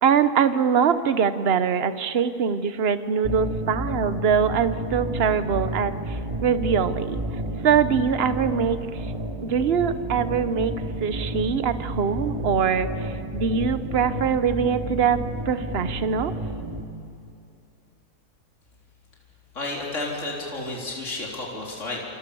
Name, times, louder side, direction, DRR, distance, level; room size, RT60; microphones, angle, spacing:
voice 1, 0.0-7.2 7.6-8.8 9.4-16.3, right 7 dB, 45° right, 11 dB, 1.2 m, -23 dB
sound 1, 3.2-16.8, right 1 dB, 15° right, 2.5 m, -31 dB
voice 2, 19.5-22.0, left 2 dB, 50° left, -3 dB, 4.3 m, -31 dB
28.5 x 28.0 x 7.1 m, 2.6 s
omnidirectional pair, 1.7 m